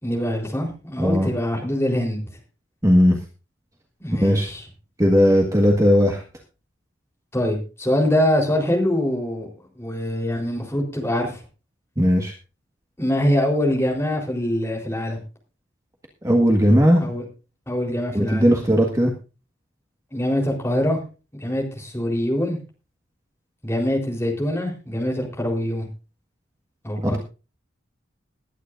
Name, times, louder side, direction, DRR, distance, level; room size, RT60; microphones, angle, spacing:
voice 1, 0.0-2.2 4.0-4.6 7.3-9.5 9.8-11.4 13.0-15.2 17.0-17.2 17.7-18.5 20.1-21.0 21.4-22.6 23.6-25.9 26.8-27.2, left 1 dB, 15° left, -1 dB, 3.9 m, -24 dB
voice 2, 1.0-1.3 2.8-3.2 4.2-4.5 5.0-6.2 12.0-12.3 16.2-17.0 18.1-19.1 27.0-27.2, equal, 15° right, 1 dB, 1.6 m, -17 dB
21.0 x 10.0 x 2.6 m, 0.32 s
head